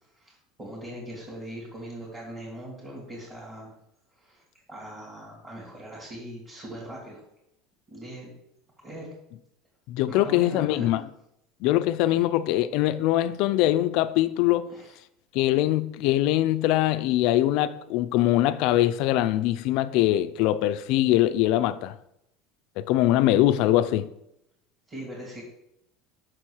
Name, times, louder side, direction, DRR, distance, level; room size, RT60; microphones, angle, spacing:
voice 1, 0.0-3.7 4.1-4.4 4.7-7.2 7.9-8.3 8.8-9.1 10.1-10.9 14.7-14.9 24.9-25.4, right 1 dB, 15° right, 2.2 m, -40 dB
voice 2, 9.9-11.0 11.6-14.7 15.3-21.9 22.8-24.1, left 14 dB, 55° left, 0.4 m, -22 dB
6.0 x 4.5 x 6.4 m
cardioid pair, 160°, 0 cm